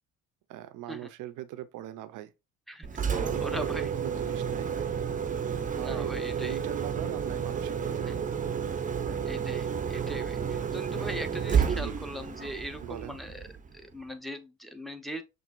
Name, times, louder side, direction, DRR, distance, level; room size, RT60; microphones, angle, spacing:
voice 1, 0.5-2.3 3.0-5.0 5.8-6.2 6.4-8.4 11.7-12.0 12.8-13.2, right 13 dB, 90° right, 0.5 m, -40 dB
Engine, 2.8-13.8, right 7 dB, 25° right, 0.6 m, -31 dB
voice 2, 3.4-3.9 5.8-6.6 9.2-13.5 13.7-15.2, right 1 dB, ahead, 0.8 m, -40 dB
6.0 x 2.6 x 2.5 m
cardioid pair, 90°, 30 cm